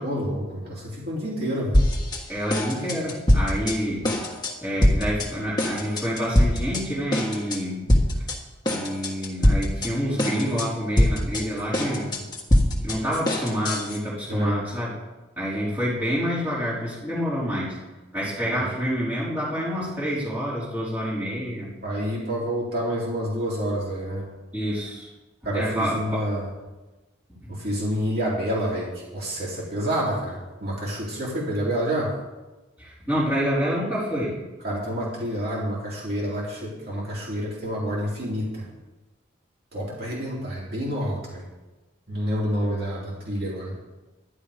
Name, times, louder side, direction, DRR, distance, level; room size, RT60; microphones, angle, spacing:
voice 1, 0.0-1.8 14.3-14.6 18.4-18.7 21.8-24.2 25.4-26.5 27.5-32.1 34.6-38.7 39.7-41.4 42.1-43.8, equal, 50° right, -5 dB, 3.3 m, -28 dB
sound 1, 1.7-2.2 2.5-3.8 4.0-4.5 4.8-5.3 5.6-6.8 7.1-7.6 7.9-8.4 8.7-9.9 10.2-10.7 11.0-14.0, left 1 dB, 20° left, 1.6 m, -22 dB
voice 2, 2.3-4.1 4.6-7.9 8.6-12.1 12.7-14.9 15.4-17.8 18.1-21.7 24.5-25.1 25.5-26.3 27.4-27.5 32.8-34.3, equal, 10° right, -9 dB, 4.5 m, -27 dB
11.5 x 10.5 x 5.1 m, 1.1 s
head